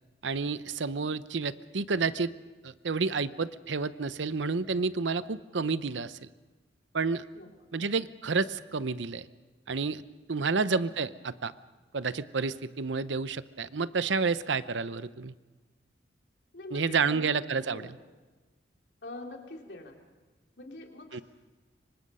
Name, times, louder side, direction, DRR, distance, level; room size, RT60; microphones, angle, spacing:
voice 1, 0.2-2.3 2.6-6.2 6.9-7.2 7.7-9.3 9.7-10.0 10.3-11.5 11.9-15.3 16.7-17.8 21.1-21.2, right 4 dB, 80° right, 15 dB, 0.8 m, -30 dB
voice 2, 16.5-18.0 19.0-20.0 20.6-21.2, left 2 dB, 65° left, 1 dB, 3.2 m, -45 dB
26.5 x 24.5 x 5.6 m, 1.3 s
head